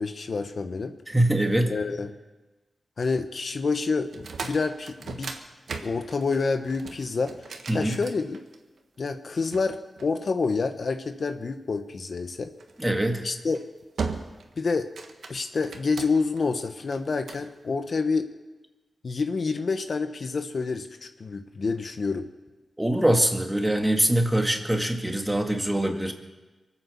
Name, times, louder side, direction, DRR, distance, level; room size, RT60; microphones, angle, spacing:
voice 1, 0.0-0.9 1.7-2.1 3.0-5.3 5.8-7.4 7.7-8.4 9.0-12.5 13.2-13.6 14.6-14.9 15.3-18.3 19.0-22.3, left 4 dB, 60° left, 8 dB, 1.0 m, -28 dB
voice 2, 1.1-1.8 7.7-7.9 12.8-13.3 22.8-26.1, right 1 dB, 10° right, 4 dB, 2.0 m, -23 dB
sound 1, 4.1-8.8 9.5-10.8 12.6-12.9 13.4-13.6 14.0-14.5 14.8-16.4 16.9-17.5, right 5 dB, 80° right, 1.4 m, -37 dB
23.5 x 8.8 x 7.0 m, 1.2 s
cardioid pair, 70°, 0 cm